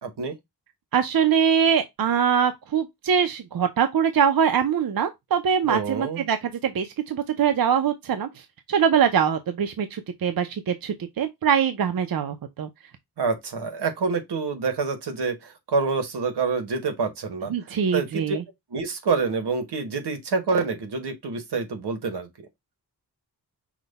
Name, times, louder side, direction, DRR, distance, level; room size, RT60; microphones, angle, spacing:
voice 1, 0.0-0.3 5.6-6.2 13.2-17.5 17.9-18.4 18.7-22.5, right 4 dB, 85° right, 1.3 m, -27 dB
voice 2, 0.9-12.7 17.5-18.4, right 7 dB, 60° right, 0.6 m, -23 dB
5.9 x 2.2 x 4.0 m
wide cardioid pair, 90°, 39 cm